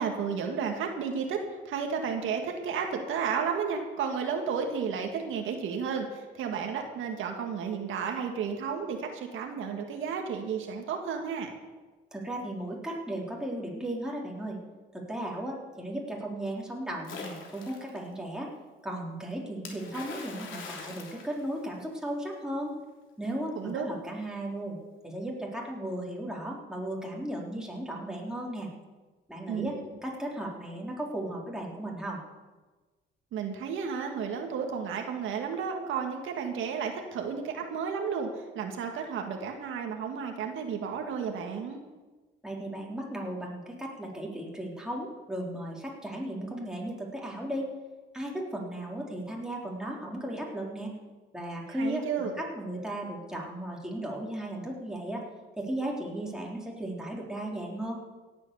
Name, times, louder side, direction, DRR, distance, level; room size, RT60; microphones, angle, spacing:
voice 1, 0.0-11.5 23.6-23.9 29.5-29.7 33.3-38.3 38.5-41.8 51.8-52.3, right 6 dB, 85° right, 3 dB, 1.8 m, -32 dB
voice 2, 12.1-14.6 14.9-18.5 18.8-22.8 23.2-24.8 25.0-28.7 29.3-32.2 42.4-47.7 48.1-50.9 51.3-55.2 55.6-58.0, right 1 dB, 5° right, -3 dB, 3.8 m, -36 dB
Splash splatter, 17.0-18.0 19.6-22.1, left 4 dB, 80° left, 3.1 m, -43 dB
17.0 x 8.2 x 6.9 m, 1.3 s
cardioid pair, 90°, 20 cm